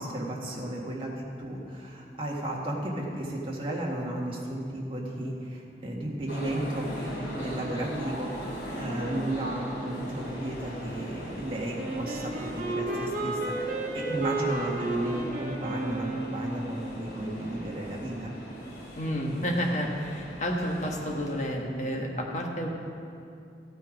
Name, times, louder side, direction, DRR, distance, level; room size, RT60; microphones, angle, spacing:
voice 1, 0.0-18.3, right 1 dB, 30° right, -3 dB, 1.8 m, -34 dB
sound 1, 6.3-21.5, equal, 65° left, 3.1 m, -40 dB
Wind instrument woodwind instrument, 11.8-16.8, right 3 dB, 45° right, 1.4 m, -32 dB
voice 2, 19.0-22.7, equal, 40° left, 0 dB, 1.5 m, -30 dB
14.5 x 8.9 x 5.2 m, 2.6 s
head